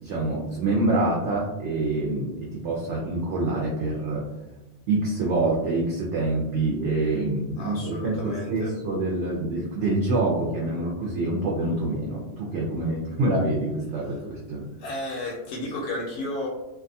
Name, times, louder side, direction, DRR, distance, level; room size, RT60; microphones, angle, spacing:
voice 1, 0.0-4.3 4.9-14.7, right 2 dB, 70° right, -4 dB, 0.9 m, -26 dB
voice 2, 7.6-8.1 8.3-8.4 14.8-16.5, left 2 dB, 80° left, -3 dB, 0.9 m, -32 dB
2.6 x 2.3 x 2.6 m, 1.0 s
omnidirectional pair, 1.3 m